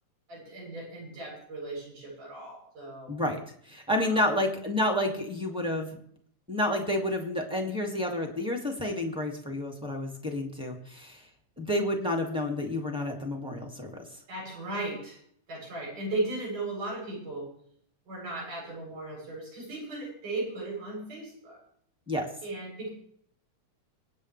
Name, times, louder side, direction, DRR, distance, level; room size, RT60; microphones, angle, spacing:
voice 1, 0.3-3.1 4.0-4.3 14.3-15.2 15.5-17.5 18.1-21.6 22.4-22.9, right 2 dB, 75° right, -4 dB, 9.7 m, -36 dB
voice 2, 3.1-5.9 6.5-11.2 11.6-14.1 22.1-22.3, left 1 dB, ahead, 1 dB, 1.7 m, -30 dB
25.5 x 9.0 x 3.4 m, 0.63 s
omnidirectional pair, 3.7 m